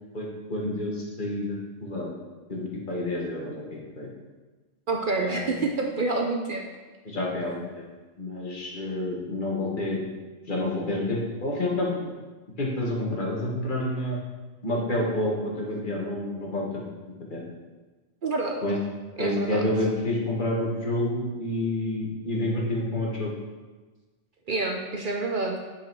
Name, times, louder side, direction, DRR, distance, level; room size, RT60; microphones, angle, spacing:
voice 1, 0.1-2.1 2.5-4.1 5.2-5.7 7.0-7.8 8.2-10.0 10.5-12.0 12.6-14.2 14.6-16.8 17.3-17.5 18.6-18.8 19.2-23.3, left 1 dB, 45° left, -3 dB, 1.6 m, -29 dB
voice 2, 4.9-6.6 18.2-18.6 19.2-19.6 24.5-25.6, right 3 dB, 50° right, 1 dB, 0.8 m, -27 dB
8.1 x 4.9 x 4.6 m, 1.3 s
omnidirectional pair, 1.2 m